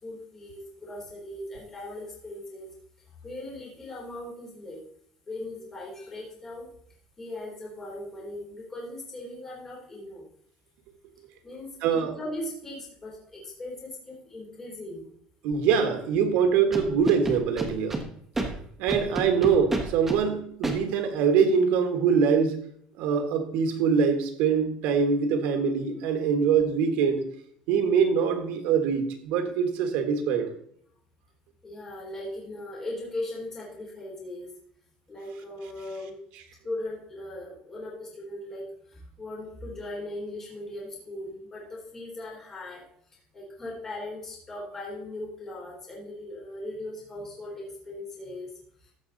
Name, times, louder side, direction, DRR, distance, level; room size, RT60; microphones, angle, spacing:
voice 1, 0.0-2.7 3.2-4.9 5.3-6.7 7.2-10.2 11.4-15.1 31.6-34.5 35.1-36.2 36.6-42.8 43.3-48.5, left 1 dB, 15° left, -5 dB, 3.3 m, -39 dB
voice 2, 11.8-12.1 15.4-18.0 18.8-22.6 23.0-27.3 27.7-30.5, right 6 dB, 70° right, 6 dB, 1.5 m, -24 dB
Scratching (performance technique), 16.7-18.0 18.3-18.5 18.9-20.2 20.6-20.7, right 2 dB, 10° right, 1.2 m, -29 dB
14.0 x 6.3 x 4.0 m, 0.65 s
cardioid pair, 175°, 3 cm